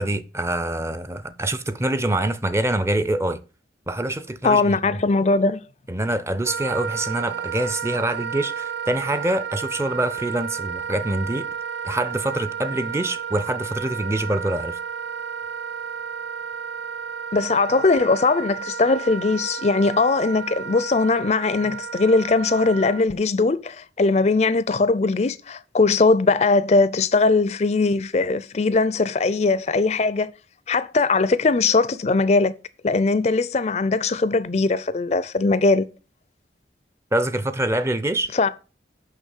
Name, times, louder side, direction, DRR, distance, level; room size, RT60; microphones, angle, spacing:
voice 1, 0.0-3.4 3.9-4.8 5.9-11.5 11.8-14.8 37.1-38.3, right 1 dB, 15° right, 0.5 m, -25 dB
voice 2, 4.4-5.7 17.3-30.3 30.7-32.5 32.8-35.9 38.3-38.5, left 3 dB, 40° left, 0.5 m, -20 dB
Wind instrument woodwind instrument, 6.4-23.0, right 7 dB, 70° right, 0.5 m, -32 dB
6.5 x 5.7 x 6.3 m
head